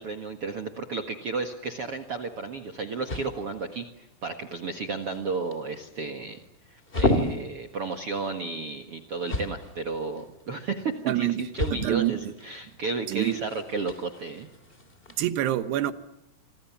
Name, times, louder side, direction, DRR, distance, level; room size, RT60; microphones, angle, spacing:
voice 1, 0.0-3.9 4.2-6.4 6.7-14.5, right 4 dB, 50° right, 1.9 m, -33 dB
sound 1, 1.8-15.2, left 1 dB, 15° left, 2.6 m, -35 dB
voice 2, 11.1-11.4 11.7-12.3 13.1-13.4 15.2-15.9, right 13 dB, 80° right, 3.3 m, -26 dB
28.0 x 26.0 x 7.3 m
omnidirectional pair, 4.7 m